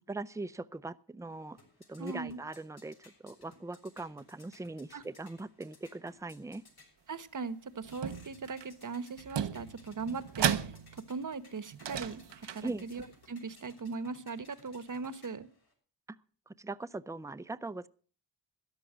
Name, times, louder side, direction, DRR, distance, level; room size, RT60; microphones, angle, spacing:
voice 1, 0.1-1.6 1.9-6.6 12.6-12.9 16.5-17.9, right 2 dB, 5° right, 14 dB, 0.6 m, -40 dB
sound 1, 1.3-15.7, left 3 dB, 60° left, 6.7 m, -61 dB
voice 2, 2.0-2.4 4.9-5.0 7.1-15.5, right 4 dB, 45° right, 15 dB, 1.1 m, -39 dB
sound 2, 7.8-8.7 9.2-11.2 11.7-13.1, right 9 dB, 85° right, 0.9 m, -35 dB
13.5 x 10.5 x 6.2 m, 0.41 s
cardioid pair, 60°, 42 cm